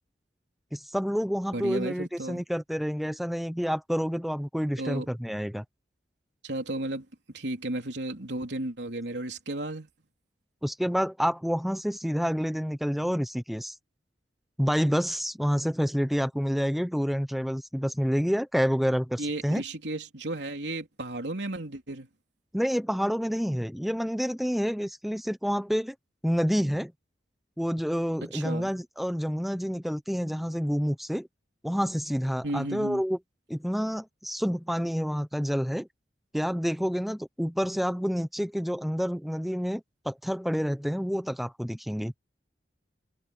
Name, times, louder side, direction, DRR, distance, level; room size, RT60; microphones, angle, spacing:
voice 1, 0.7-5.6 10.6-13.7 14.6-19.6 22.5-25.9 26.2-26.9 27.6-31.3 31.6-33.2 33.5-35.9 36.3-42.1, equal, ahead, 0.9 m, -28 dB
voice 2, 1.5-2.4 4.8-5.1 6.4-7.1 7.3-9.9 19.2-22.1 28.3-28.7 32.4-33.0, right 1 dB, 75° right, 3.6 m, -33 dB
head